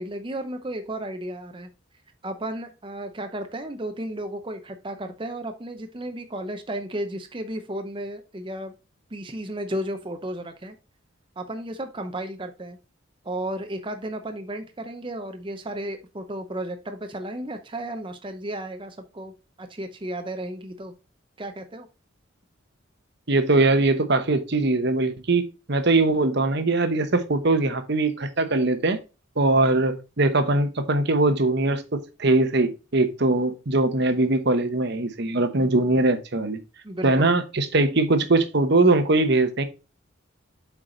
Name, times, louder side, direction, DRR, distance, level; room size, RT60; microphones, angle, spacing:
voice 1, 0.0-1.7 2.2-8.7 9.1-10.7 11.4-12.8 13.2-19.3 19.6-20.9 21.4-21.9 35.5-35.7 36.8-37.3, right 1 dB, 25° right, 0.6 m, -33 dB
voice 2, 23.3-29.0 29.4-36.6 37.0-39.6, right 2 dB, 55° right, 1.0 m, -21 dB
7.8 x 4.7 x 3.9 m
head